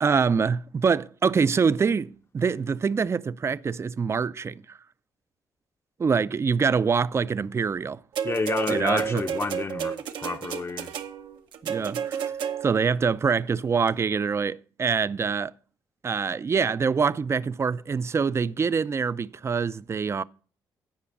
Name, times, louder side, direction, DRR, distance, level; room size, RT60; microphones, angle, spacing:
voice 1, 0.0-4.8 6.0-8.0 8.7-9.2 11.6-12.2 12.6-15.5 16.0-20.2, right 5 dB, 35° right, 0.4 m, -25 dB
voice 2, 8.2-10.9, left 4 dB, 30° left, 0.7 m, -30 dB
sound 1, 8.2-12.9 13.9-14.0, right 8 dB, 80° right, 0.7 m, -31 dB
10.0 x 5.0 x 7.1 m
supercardioid pair, 65°, 8 cm